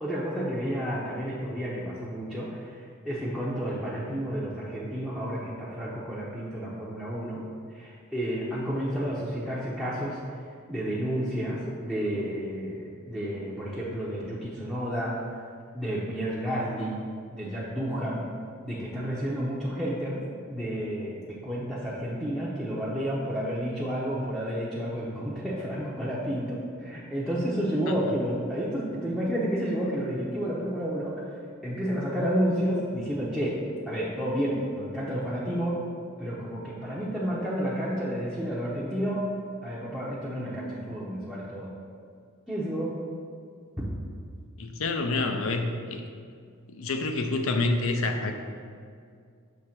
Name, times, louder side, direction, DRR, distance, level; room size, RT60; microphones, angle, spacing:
voice 1, 0.0-7.4 7.7-10.2 10.7-15.3 15.7-17.0 17.3-18.3 18.6-20.2 20.5-31.3 31.6-33.6 33.9-35.8 36.2-39.2 39.6-41.7 42.5-43.0, equal, ahead, -9 dB, 0.7 m, -31 dB
voice 2, 44.6-46.1 46.7-48.4, left 2 dB, 80° left, 6 dB, 0.6 m, -28 dB
6.4 x 3.2 x 5.8 m, 2.2 s
head